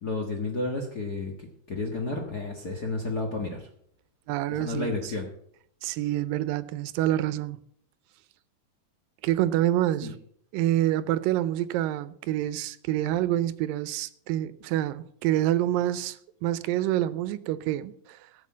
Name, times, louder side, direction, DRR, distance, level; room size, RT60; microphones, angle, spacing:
voice 1, 0.0-3.7 4.5-5.3 10.0-10.1, left 3 dB, 45° left, 1.3 m, -32 dB
voice 2, 4.3-5.1 5.8-7.6 9.2-10.2 10.5-16.2 16.4-17.9, right 13 dB, 85° right, 2.4 m, -27 dB
17.0 x 6.5 x 7.4 m
omnidirectional pair, 4.0 m